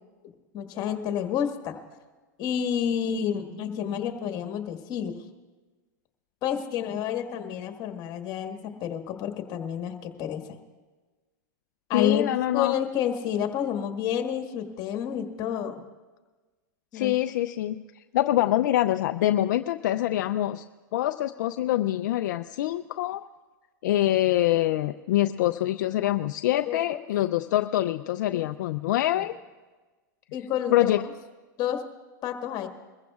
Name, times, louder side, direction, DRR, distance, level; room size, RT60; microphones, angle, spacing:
voice 1, 0.5-1.8 2.4-5.2 6.4-10.6 11.9-12.2 12.5-15.8 16.9-17.1 26.7-27.0 28.3-28.5 29.1-29.3 30.3-30.8 31.6-31.9 32.2-32.7, left 9 dB, 40° left, 5 dB, 1.6 m, -29 dB
voice 2, 11.9-12.7 16.9-20.6 20.9-23.3 23.8-29.3 30.7-31.0, left 14 dB, 70° left, 9 dB, 0.4 m, -25 dB
23.0 x 15.0 x 2.4 m, 1.3 s
hypercardioid pair, 115°, 10 cm